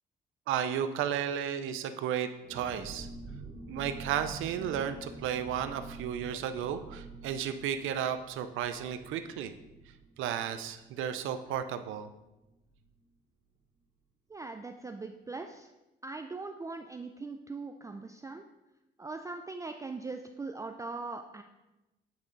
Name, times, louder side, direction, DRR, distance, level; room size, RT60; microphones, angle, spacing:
voice 1, 0.5-3.1 3.7-9.5 10.2-12.1, right 9 dB, 85° right, 10 dB, 0.5 m, -33 dB
sound 1, 2.4-11.8 12.1-12.2 12.5-12.8, right 3 dB, 40° right, 1.9 m, -47 dB
voice 2, 14.3-15.7 16.0-18.4 19.0-21.4, right 3 dB, 15° right, 5 dB, 0.3 m, -40 dB
8.8 x 3.6 x 3.9 m, 0.99 s
cardioid pair, 90°, 20 cm